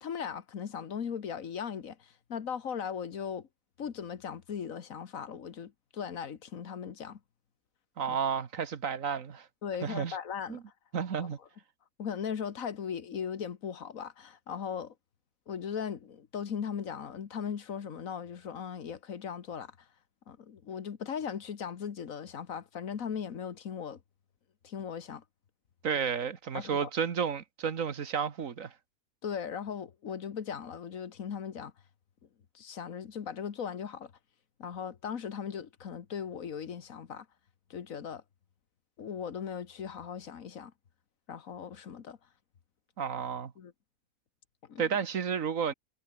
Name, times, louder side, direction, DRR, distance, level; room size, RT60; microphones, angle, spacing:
voice 1, 0.0-3.5 3.8-7.2 8.1-8.2 9.6-10.6 12.0-14.9 15.5-19.7 20.3-24.0 24.6-25.2 26.5-26.9 29.2-31.7 32.5-34.1 34.6-37.2 37.7-38.2 39.0-40.7 41.3-42.2 43.6-43.7 44.7-44.8, left 7 dB, 75° left, 1.7 m, -38 dB
voice 2, 8.0-9.5 9.8-10.2 10.5-10.6 10.9-11.4 25.8-28.7 43.0-43.5 44.8-45.7, right 7 dB, 70° right, 1.8 m, -32 dB
omnidirectional pair, 1.4 m